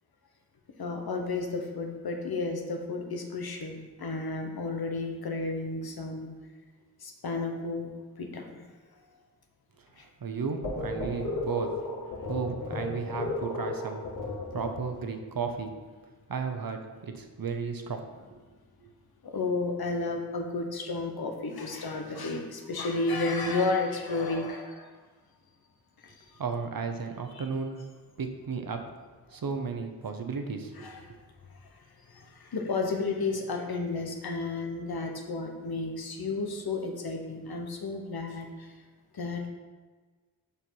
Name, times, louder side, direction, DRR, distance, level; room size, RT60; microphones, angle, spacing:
voice 1, 0.8-6.3 7.0-7.9 8.2-8.6 10.0-10.1 19.2-24.9 26.0-26.1 27.3-27.4 30.7-31.2 32.1-38.7 39.1-39.5, left 3 dB, 90° left, 3 dB, 1.0 m, -32 dB
voice 2, 10.0-14.0 14.5-15.7 16.3-18.0 18.3-18.4 18.8-18.9 26.4-27.8 28.2-28.8 29.3-30.9, right 5 dB, 70° right, 5 dB, 0.9 m, -34 dB
sound 1, 10.6-15.1, left 2 dB, 60° left, 2.1 m, -34 dB
6.8 x 5.7 x 4.7 m, 1.4 s
wide cardioid pair, 65°, 36 cm